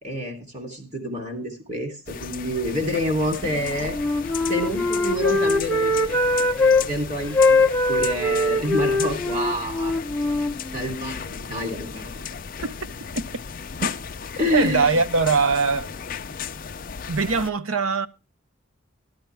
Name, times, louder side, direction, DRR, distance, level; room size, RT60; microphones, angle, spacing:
voice 1, 0.0-4.0 4.5-9.9 10.2-10.3 10.7-12.2 14.3-14.9, equal, 30° right, 3.1 m, -28 dB
sound 1, 2.1-17.5, left 6 dB, 40° left, 0.5 m, -35 dB
Wind instrument woodwind instrument, 3.9-6.8 7.3-11.2, left 2 dB, 5° left, 0.8 m, -22 dB
voice 2, 14.5-15.9 17.1-18.1, right 4 dB, 75° right, 0.8 m, -21 dB
13.0 x 12.0 x 3.4 m
head